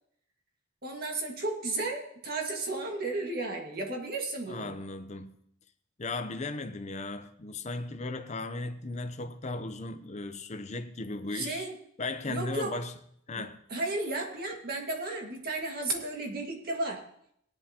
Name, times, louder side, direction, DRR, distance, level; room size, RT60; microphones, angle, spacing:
voice 1, 0.8-4.7 11.3-11.7 12.3-12.8 13.4-13.5 13.7-17.0, right 2 dB, 50° right, 1.9 m, -33 dB
voice 2, 4.5-5.4 6.0-11.7 12.0-12.9 13.3-13.6, left 3 dB, 35° left, 0.7 m, -36 dB
17.5 x 10.5 x 2.9 m
head